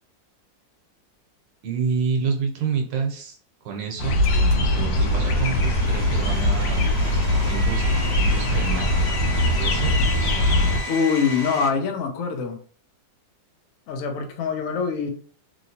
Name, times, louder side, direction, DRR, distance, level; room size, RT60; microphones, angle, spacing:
voice 1, 1.6-3.4 3.6-6.9 7.5-8.9 9.6-10.0, right 5 dB, 75° right, 2 dB, 1.3 m, -28 dB
sound 1, 4.0-10.8, left 1 dB, 85° left, 1.3 m, -21 dB
Domestic sounds home sounds, 4.2-11.7, equal, 45° right, 0.9 m, -35 dB
voice 2, 10.9-12.6 13.9-15.1, left 6 dB, 65° left, 4 dB, 0.8 m, -24 dB
3.0 x 2.9 x 2.7 m, 0.43 s
omnidirectional pair, 2.0 m